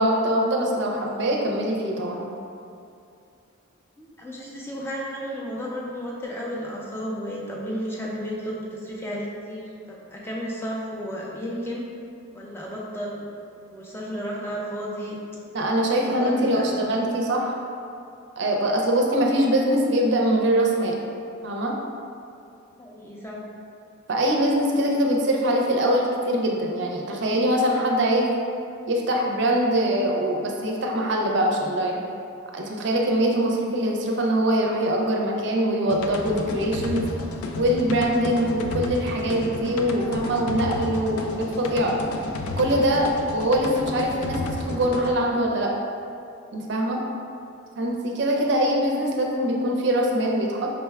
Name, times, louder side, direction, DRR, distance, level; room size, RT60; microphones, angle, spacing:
voice 1, 0.0-2.3 15.5-17.6 18.4-21.0 21.4-21.8 24.1-28.3 28.9-32.0 32.5-37.1 37.5-41.9 42.6-45.7 46.5-47.0 47.8-50.7, right 1 dB, 55° right, 0 dB, 0.5 m, -23 dB
voice 2, 4.0-11.8 12.3-13.3 13.7-15.2 15.9-16.9 22.8-23.4, equal, 10° left, -4 dB, 0.4 m, -33 dB
sound 1, 35.9-45.1, left 2 dB, 85° left, 0.3 m, -32 dB
5.2 x 2.2 x 3.3 m, 2.5 s
head